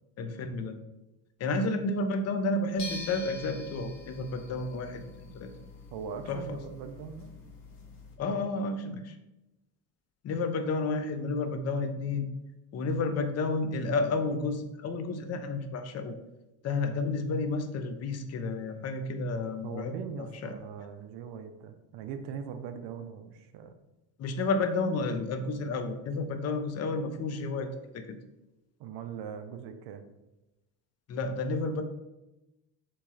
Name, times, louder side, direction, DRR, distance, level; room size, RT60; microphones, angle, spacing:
voice 1, 0.2-0.8 1.4-5.5 6.3-6.6 8.2-9.2 10.2-12.3 12.7-16.2 16.6-20.6 24.2-28.2 31.1-31.8, left 3 dB, 35° left, 8 dB, 0.5 m, -31 dB
sound 1, 2.8-8.1, left 3 dB, 60° left, 1.0 m, -45 dB
voice 2, 5.9-7.3 19.6-23.8 28.8-30.0, right 7 dB, 60° right, 8 dB, 0.5 m, -41 dB
3.0 x 3.0 x 3.6 m, 0.97 s
supercardioid pair, 90°, 47 cm